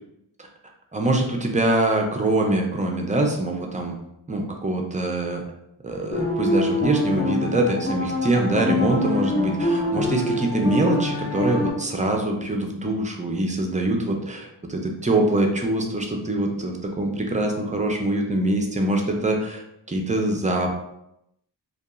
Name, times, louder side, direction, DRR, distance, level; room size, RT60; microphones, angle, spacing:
voice 1, 0.9-3.9 4.3-5.4 5.8-19.6 19.9-20.8, right 2 dB, 20° right, 2 dB, 0.4 m, -24 dB
sound 1, 6.1-11.7, left 2 dB, 35° left, 0.5 m, -25 dB
2.8 x 2.3 x 2.3 m, 0.82 s
wide cardioid pair, 80°, 42 cm